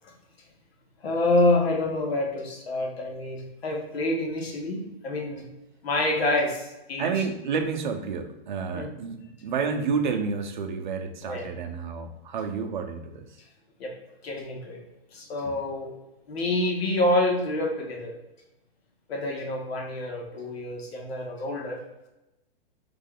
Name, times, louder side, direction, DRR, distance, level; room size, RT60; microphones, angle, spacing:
voice 1, 1.0-5.4 5.8-7.1 8.7-8.9 11.3-11.5 13.8-13.9 14.2-14.8 15.1-15.9 16.3-18.1 19.1-21.8, left 1 dB, 85° left, 1 dB, 1.4 m, -27 dB
voice 2, 7.0-13.2, right 5 dB, 50° right, 5 dB, 0.7 m, -30 dB
3.9 x 3.3 x 3.6 m, 0.94 s
hypercardioid pair, 180°, 30 cm